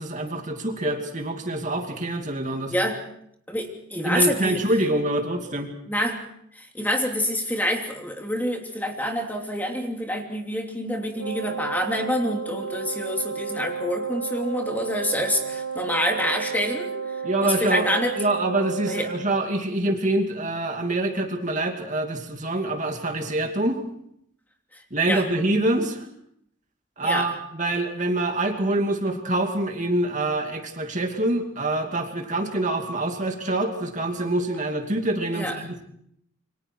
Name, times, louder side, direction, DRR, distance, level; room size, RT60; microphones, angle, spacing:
voice 1, 0.0-2.7 4.0-5.7 17.2-17.9 18.2-23.8 24.9-26.1 27.0-35.8, right 2 dB, 40° right, 3 dB, 2.6 m, -25 dB
voice 2, 2.7-3.0 3.5-4.6 5.9-6.2 6.5-16.9 17.4-18.1 18.9-19.1 25.1-25.2 27.0-27.3 35.3-35.6, equal, 10° left, 2 dB, 2.9 m, -27 dB
Wind instrument woodwind instrument, 11.2-19.4, right 6 dB, 80° right, 2.9 m, -32 dB
28.5 x 25.0 x 4.6 m, 0.72 s
head